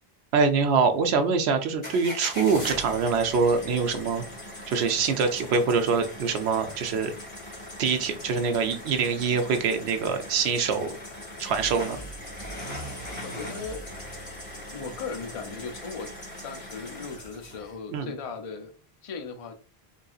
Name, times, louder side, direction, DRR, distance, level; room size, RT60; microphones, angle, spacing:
voice 1, 0.3-4.2 4.7-7.1 7.8-11.0 11.4-12.0 17.9-18.1, right 5 dB, 85° right, 7 dB, 0.9 m, -24 dB
sound 1, 1.8-17.7, left 1 dB, 30° left, 1.4 m, -40 dB
voice 2, 13.2-13.8 14.7-16.1 16.4-18.7 19.0-19.5, left 5 dB, 45° left, 5 dB, 0.5 m, -37 dB
3.7 x 2.6 x 2.3 m, 0.36 s
omnidirectional pair, 1.1 m